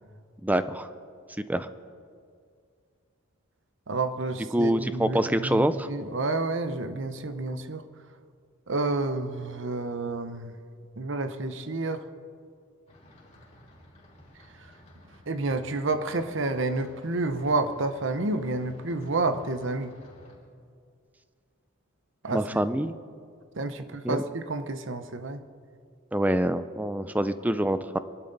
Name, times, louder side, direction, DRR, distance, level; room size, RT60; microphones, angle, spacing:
voice 1, 0.4-0.9 1.5-1.7 4.5-5.9 22.3-22.9 24.0-24.2 26.1-28.0, right 1 dB, 10° right, 12 dB, 0.5 m, -25 dB
voice 2, 3.9-7.8 8.7-10.5 11.0-12.0 15.3-19.9 22.2-22.4 23.6-25.4, right 3 dB, 60° right, 9 dB, 0.9 m, -29 dB
sound 1, 12.9-20.3, equal, 35° left, 3.8 m, -53 dB
24.5 x 12.0 x 4.0 m, 2.2 s
head